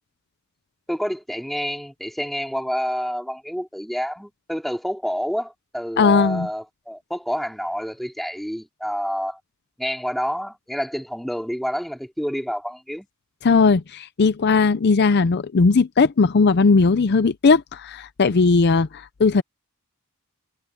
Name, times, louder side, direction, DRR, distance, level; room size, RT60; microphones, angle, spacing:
voice 1, 0.9-9.4 9.8-13.1, equal, ahead, 2.4 m, -28 dB
voice 2, 6.0-6.5 13.4-19.4, left 4 dB, 50° left, 0.5 m, -18 dB
head